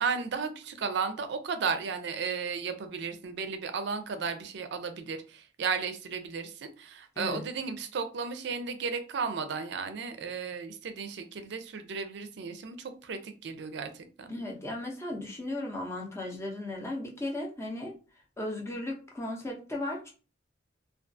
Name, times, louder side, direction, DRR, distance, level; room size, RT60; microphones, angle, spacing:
voice 1, 0.0-14.3, right 5 dB, 65° right, 0.4 m, -34 dB
voice 2, 14.3-18.0 18.4-20.1, left 1 dB, 15° left, 0.6 m, -36 dB
2.3 x 2.3 x 2.5 m
head